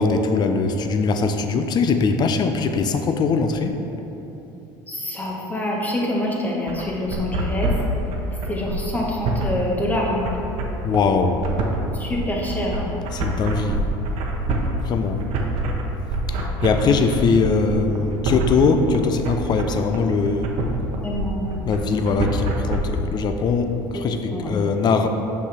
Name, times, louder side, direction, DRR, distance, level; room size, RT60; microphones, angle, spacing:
voice 1, 0.0-3.8 10.8-11.4 13.1-13.8 14.8-15.2 16.3-20.5 21.6-25.1, left 4 dB, 40° left, 7 dB, 0.5 m, -21 dB
voice 2, 4.9-7.7 8.5-10.3 11.9-12.9 21.0-21.5 23.9-24.1 24.3-24.6, left 1 dB, 15° left, -3 dB, 1.2 m, -26 dB
sound 1, 6.7-22.8, right 2 dB, 60° right, 0.9 m, -26 dB
6.1 x 5.8 x 3.5 m, 3.0 s
supercardioid pair, 105°, 11 cm